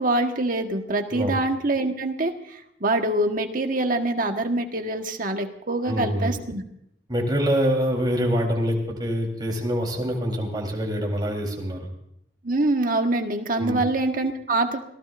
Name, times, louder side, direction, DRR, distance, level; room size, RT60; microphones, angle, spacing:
voice 1, 0.0-6.6 12.4-14.8, right 2 dB, 50° right, 4 dB, 1.5 m, -25 dB
voice 2, 5.9-6.3 7.1-11.9 13.5-13.8, equal, 25° right, 0 dB, 3.8 m, -25 dB
26.0 x 17.5 x 2.6 m, 0.75 s
head